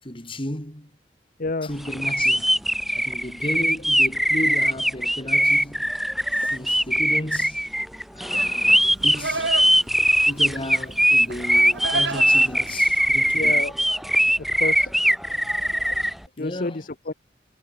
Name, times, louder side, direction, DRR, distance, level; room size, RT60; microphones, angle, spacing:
voice 1, 0.0-0.9 1.6-2.5 3.0-5.9 6.3-7.6 8.1-9.6 10.3-13.7 16.4-16.8, left 1 dB, 30° left, 7.8 m, -34 dB
voice 2, 1.4-1.7 13.3-13.7 14.4-14.9 16.4-17.1, left 3 dB, 50° left, 1.0 m, -29 dB
sound 1, 1.9-16.1, equal, ahead, 0.6 m, -21 dB
Livestock farm animals working animals, 8.3-13.5, right 3 dB, 70° right, 2.7 m, -33 dB
head